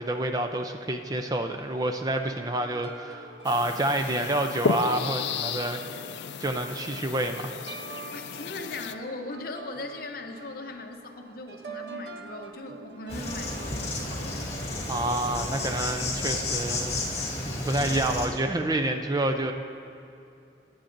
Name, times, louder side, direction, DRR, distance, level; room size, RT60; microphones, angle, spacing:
voice 1, 0.0-5.8 6.4-7.6 14.9-17.0 17.4-19.5, right 1 dB, 20° right, 6 dB, 0.4 m, -28 dB
sound 1, 2.3-14.9, right 4 dB, 70° right, 0.7 m, -46 dB
sound 2, 3.4-8.9, left 5 dB, 70° left, 0.4 m, -33 dB
voice 2, 8.1-14.5 17.7-18.1, left 2 dB, 50° left, 4 dB, 0.8 m, -39 dB
Insect, 13.1-18.3, left 2 dB, 35° left, 1.6 m, -32 dB
20.0 x 8.7 x 2.6 m, 2.6 s
head